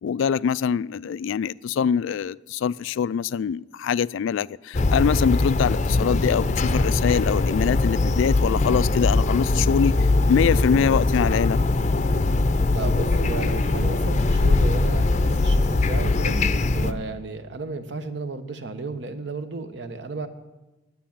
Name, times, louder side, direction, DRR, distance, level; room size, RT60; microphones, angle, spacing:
voice 1, 0.0-11.6, left 7 dB, 90° left, 0.3 m, -24 dB
sound 1, 4.7-16.9, left 2 dB, 40° left, 0.5 m, -21 dB
voice 2, 12.7-16.4 16.7-20.3, right 3 dB, 65° right, 1.0 m, -33 dB
10.0 x 9.5 x 8.7 m
head